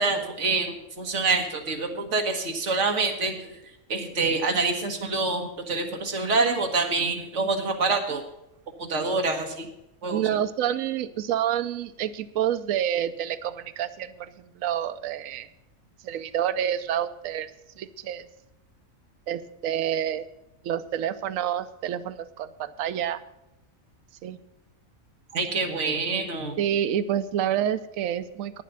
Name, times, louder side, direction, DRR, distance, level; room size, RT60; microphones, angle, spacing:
voice 1, 0.0-3.6 3.9-8.2 8.8-9.7 10.0-10.2 25.3-26.6, right 3 dB, 60° right, 3 dB, 1.8 m, -26 dB
voice 2, 10.1-15.5 16.0-17.5 17.8-18.2 19.3-20.3 20.6-23.2 24.2-24.4 26.6-28.6, right 10 dB, 75° right, 11 dB, 1.0 m, -28 dB
9.5 x 7.4 x 8.1 m, 0.88 s
omnidirectional pair, 1.4 m